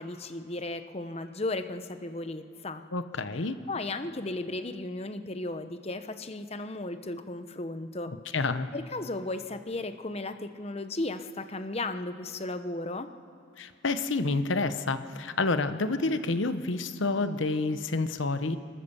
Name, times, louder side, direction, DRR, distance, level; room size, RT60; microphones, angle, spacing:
voice 1, 0.0-2.8 3.7-8.1 8.4-8.5 8.7-13.1, left 2 dB, 30° left, 9 dB, 0.9 m, -35 dB
voice 2, 2.9-3.6 8.3-8.7 13.6-18.6, left 3 dB, 70° left, 10 dB, 1.0 m, -29 dB
28.5 x 14.0 x 7.0 m, 2.5 s
head